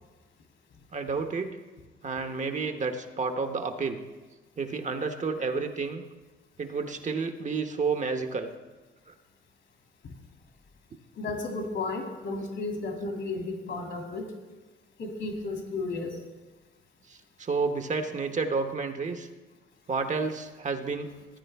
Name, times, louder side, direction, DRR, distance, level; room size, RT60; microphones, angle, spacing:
voice 1, 0.9-1.6 2.0-4.0 4.6-6.0 6.6-8.5 9.1-9.2 17.1-19.3 19.9-21.1, right 4 dB, 40° right, 7 dB, 0.9 m, -30 dB
voice 2, 11.2-14.3 15.0-16.2, left 3 dB, 65° left, 2 dB, 2.4 m, -33 dB
15.0 x 9.3 x 3.4 m, 1.2 s
cardioid pair, 90°, 20 cm